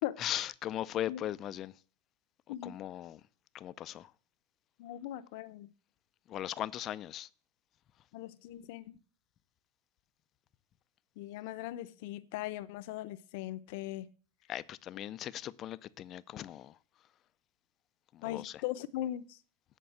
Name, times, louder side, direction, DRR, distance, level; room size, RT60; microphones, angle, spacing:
voice 1, 0.2-1.7 2.5-3.2 3.5-4.1 6.3-7.3 14.5-16.8 18.1-18.5, left 12 dB, 35° left, 0.5 m, -38 dB
voice 2, 4.8-5.7 8.1-9.0 11.2-14.1 18.2-19.4, left 14 dB, 60° left, 0.8 m, -39 dB
9.4 x 5.3 x 7.9 m
supercardioid pair, 135°, 0 cm